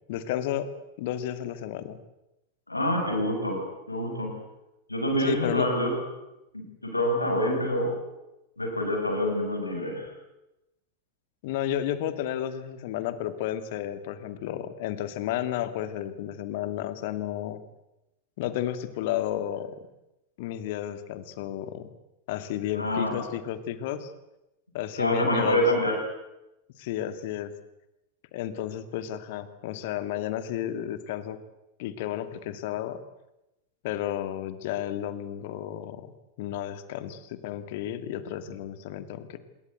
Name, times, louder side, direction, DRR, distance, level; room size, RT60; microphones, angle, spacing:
voice 1, 0.1-0.7 1.0-2.0 5.2-5.7 9.8-10.1 11.4-17.6 18.4-19.8 20.4-21.9 22.3-24.1 24.7-25.8 26.8-27.5 28.3-31.4 31.8-33.0 33.8-36.1 36.4-39.4, left 11 dB, 50° left, 11 dB, 2.3 m, -32 dB
voice 2, 2.7-4.4 4.9-6.0 6.5-8.0 8.6-10.1 22.8-23.2 25.0-26.0, equal, 85° left, 2 dB, 7.8 m, -26 dB
26.0 x 22.5 x 8.2 m, 0.94 s
figure-of-eight pair, 90°, 0 cm